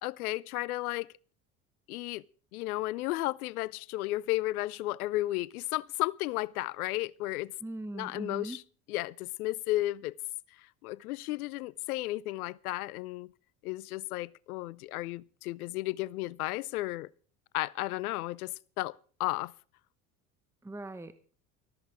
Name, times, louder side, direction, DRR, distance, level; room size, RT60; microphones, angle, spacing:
voice 1, 0.0-1.1 1.9-2.2 2.5-7.5 7.9-8.6 8.9-10.1 10.8-13.3 13.6-17.1 17.5-19.5, left 18 dB, 80° left, 0.6 m, -33 dB
voice 2, 7.6-8.6 20.6-21.3, right 2 dB, 5° right, 1.0 m, -40 dB
14.0 x 13.5 x 4.8 m
hypercardioid pair, 70°, 44 cm